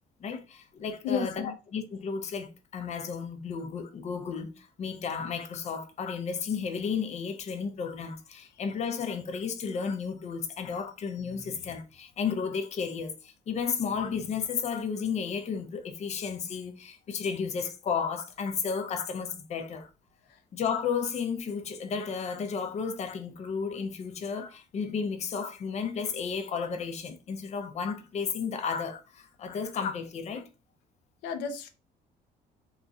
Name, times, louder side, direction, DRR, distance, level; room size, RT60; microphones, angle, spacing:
voice 1, 0.2-19.9 20.5-30.5, left 6 dB, 40° left, 0.6 m, -33 dB
voice 2, 1.0-1.5 31.2-31.7, left 6 dB, 90° left, 0.6 m, -32 dB
2.9 x 2.5 x 2.4 m
cardioid pair, 110°, 17 cm